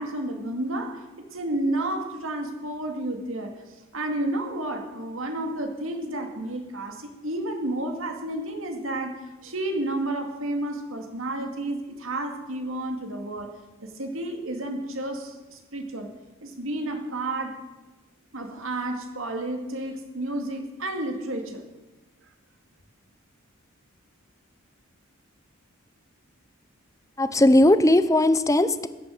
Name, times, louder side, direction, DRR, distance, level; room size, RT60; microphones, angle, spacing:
voice 1, 0.0-13.5 13.8-16.1 16.4-17.6 18.3-21.7, right 1 dB, 70° right, 4 dB, 2.3 m, -31 dB
voice 2, 27.2-28.9, left 1 dB, 15° left, 13 dB, 0.7 m, -18 dB
14.0 x 10.5 x 6.6 m, 1.1 s
head